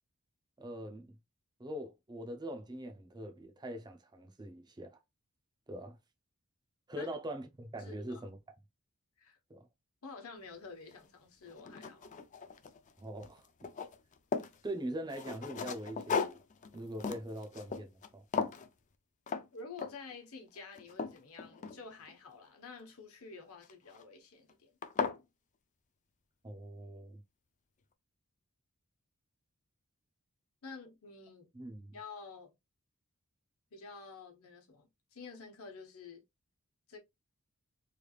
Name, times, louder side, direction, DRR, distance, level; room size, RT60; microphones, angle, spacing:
voice 1, 0.6-1.2 1.6-5.0 5.7-6.0 6.9-8.4 9.5-9.7 13.0-13.4 14.6-16.4 16.7-18.2 26.4-27.2 31.5-32.0, right 1 dB, 20° right, 0.6 m, -42 dB
voice 2, 7.8-8.2 9.2-9.4 10.0-12.0 19.5-24.8 30.6-31.5 31.9-32.5 33.7-36.2 36.9-37.0, left 4 dB, 70° left, 1.0 m, -49 dB
sound 1, 10.9-11.0 11.5-12.9 13.2-14.6 15.1-18.1 18.3-18.7 19.3-19.5 19.8-20.1 20.6-22.1 23.6-24.0 24.5-24.6 24.8-25.2, left 5 dB, 35° left, 0.4 m, -37 dB
3.3 x 3.3 x 2.3 m
head